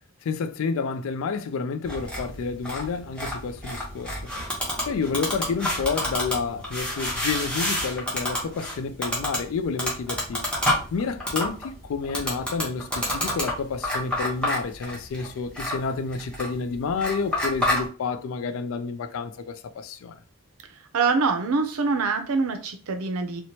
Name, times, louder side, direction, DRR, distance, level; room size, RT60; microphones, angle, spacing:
voice 1, 0.2-4.3 4.9-10.5 10.9-20.1, left 5 dB, 70° left, 0.3 m, -30 dB
sound 1, 1.8-17.8, left 1 dB, 5° left, 0.6 m, -29 dB
voice 2, 20.9-23.4, right 4 dB, 90° right, 0.5 m, -24 dB
2.9 x 2.1 x 2.7 m
head